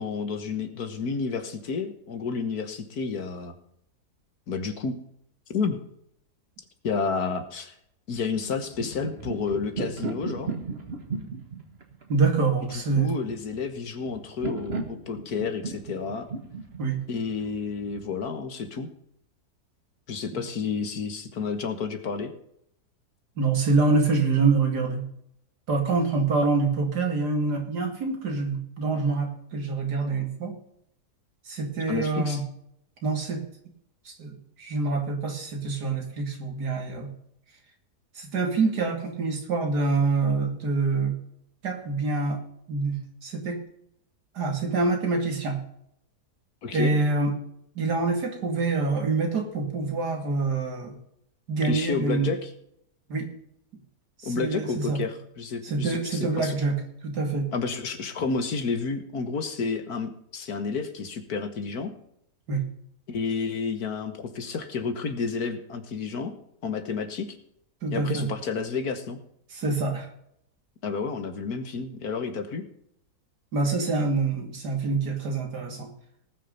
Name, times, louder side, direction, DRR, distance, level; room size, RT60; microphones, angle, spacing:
voice 1, 0.0-3.5 4.5-4.9 5.5-5.8 6.8-7.7 8.1-10.5 12.7-16.3 17.1-18.9 20.1-22.3 31.9-32.4 46.6-47.0 51.6-52.5 54.2-56.5 57.5-61.9 63.1-66.3 66.6-67.4 67.9-69.2 70.8-72.6, left 5 dB, 65° left, 8 dB, 1.9 m, -30 dB
sound 1, 8.5-18.2, right 4 dB, 40° right, 1.7 m, -36 dB
voice 2, 12.1-13.1 16.8-17.0 23.4-25.0 25.7-30.5 31.5-32.4 33.0-33.4 34.0-37.1 38.1-41.1 41.6-42.4 42.7-43.6 44.3-45.6 46.7-47.3 47.7-51.0 51.5-52.3 53.1-53.3 54.2-55.0 55.6-56.8 57.0-57.5 62.5-62.6 67.8-68.3 69.5-70.1 73.5-75.9, right 3 dB, 75° right, 3 dB, 2.9 m, -26 dB
19.0 x 6.4 x 5.5 m, 0.73 s
omnidirectional pair, 1.8 m